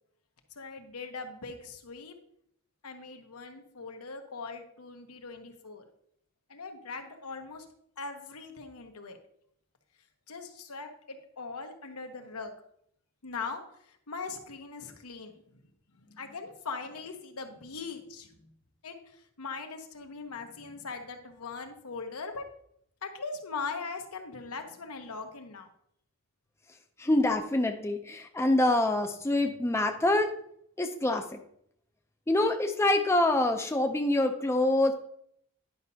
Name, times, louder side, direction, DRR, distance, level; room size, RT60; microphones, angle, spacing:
voice 1, 0.6-2.2 2.8-5.8 6.5-7.6 8.0-9.2 10.3-12.5 13.2-15.6 16.0-18.3 18.8-22.4 23.0-25.7, left 4 dB, 85° left, 5 dB, 1.0 m, -40 dB
voice 2, 27.0-30.3 30.8-31.4 32.3-34.9, left 1 dB, 10° left, 4 dB, 0.4 m, -26 dB
10.5 x 5.4 x 2.7 m, 0.69 s
head